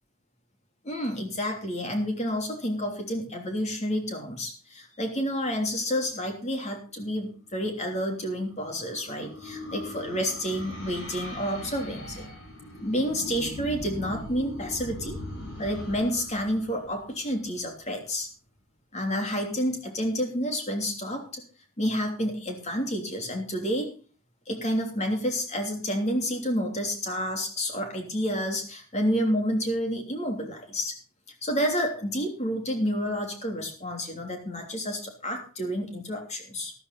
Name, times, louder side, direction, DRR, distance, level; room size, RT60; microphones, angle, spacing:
voice 1, 0.8-12.2 12.8-15.2 15.6-18.3 18.9-21.4 21.8-24.0 24.5-31.0 31.4-36.7, equal, 35° left, 3 dB, 3.2 m, -29 dB
sound 1, 8.1-17.7, left 1 dB, 75° left, 6.5 m, -40 dB
13.0 x 12.5 x 4.1 m, 0.37 s
head